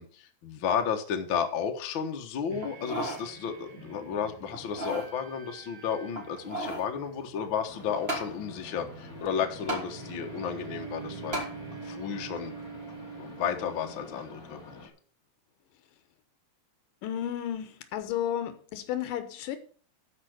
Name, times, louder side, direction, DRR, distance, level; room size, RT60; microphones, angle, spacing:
voice 1, 0.0-11.4 11.8-12.5 13.2-14.9, left 7 dB, 50° left, 1.6 m, -33 dB
sound 1, 2.5-14.6, right 5 dB, 75° right, 4.1 m, -46 dB
sound 2, 2.6-3.3 3.7-3.8 4.5-5.1 6.1-6.9 8.1-8.3 9.7-9.9 11.3-11.5 12.1-12.2, right 1 dB, 20° right, 2.4 m, -34 dB
sound 3, 7.7-14.9, left 3 dB, 35° left, 1.9 m, -48 dB
voice 2, 17.0-19.6, left 10 dB, 85° left, 2.6 m, -33 dB
12.5 x 5.0 x 6.5 m
omnidirectional pair, 3.7 m